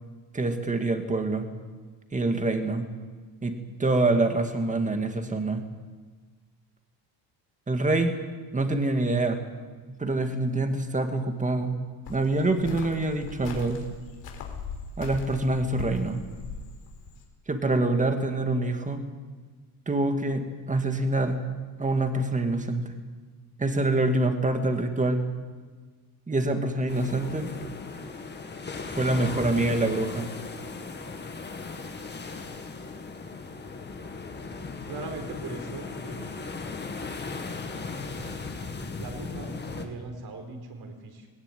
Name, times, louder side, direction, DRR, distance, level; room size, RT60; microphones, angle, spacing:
voice 1, 0.3-1.5 2.1-2.9 3.4-5.6 7.7-8.2 8.5-9.4 9.9-11.8 12.1-13.8 15.0-16.2 17.5-19.0 19.9-21.4 21.8-23.0 23.6-25.3 26.3-27.5 28.9-30.3, right 2 dB, 15° right, 6 dB, 2.1 m, -26 dB
Cricket, 12.1-17.2, left 5 dB, 70° left, 4.2 m, -40 dB
sound 1, 26.9-39.9, left 4 dB, 20° left, 2.0 m, -37 dB
voice 2, 34.9-36.6 39.0-41.3, right 3 dB, 55° right, 5 dB, 4.4 m, -40 dB
20.0 x 18.5 x 9.2 m, 1.4 s
cardioid pair, 160°, 46 cm